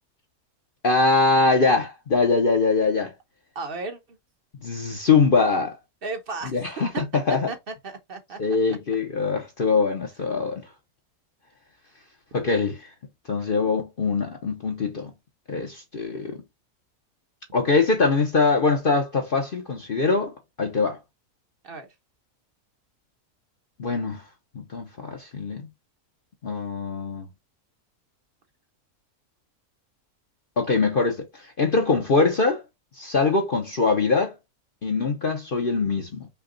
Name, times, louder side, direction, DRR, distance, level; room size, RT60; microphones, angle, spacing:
voice 1, 0.8-3.1 4.6-5.8 6.5-7.5 8.4-10.7 12.3-12.9 13.3-15.1 15.5-16.4 17.5-21.0 23.8-24.2 24.5-25.7 26.4-27.3 30.6-32.6 33.0-34.3 34.8-36.3, left 4 dB, 45° left, 0.8 m, -23 dB
voice 2, 3.5-4.2 6.0-7.0 7.3-7.6 7.8-8.4 8.7-8.8 21.6-21.9, right 4 dB, 45° right, 1.0 m, -34 dB
5.8 x 2.3 x 3.8 m
omnidirectional pair, 1.6 m